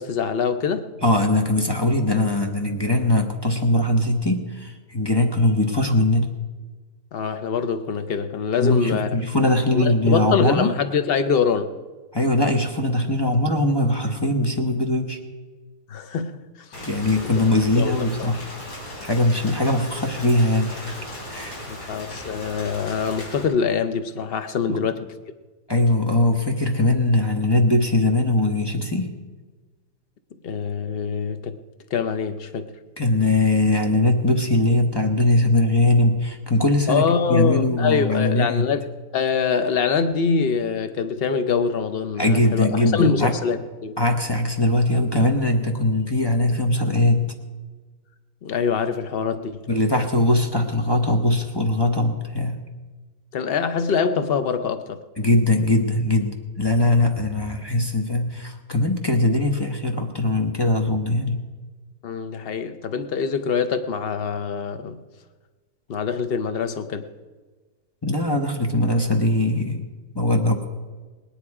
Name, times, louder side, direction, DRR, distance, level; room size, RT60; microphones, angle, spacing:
voice 1, 0.0-0.9 7.1-9.3 9.7-11.7 15.9-16.4 17.7-18.3 21.7-25.1 30.4-31.6 31.9-32.7 36.9-38.9 39.1-44.0 48.4-49.7 53.3-55.0 62.0-65.0 65.9-67.1, left 6 dB, 60° left, 9 dB, 0.6 m, -24 dB
voice 2, 1.0-6.3 8.6-10.7 12.1-15.2 16.9-18.4 19.0-20.9 21.3-21.9 24.7-24.8 25.7-29.1 33.0-38.6 42.2-43.3 44.0-47.3 49.7-52.6 55.2-61.4 68.0-69.8 70.1-70.6, left 1 dB, 20° left, 3 dB, 0.8 m, -21 dB
Rain, 16.7-23.4, left 1 dB, 75° left, 3.7 m, -37 dB
18.5 x 10.0 x 4.8 m, 1.3 s
omnidirectional pair, 1.8 m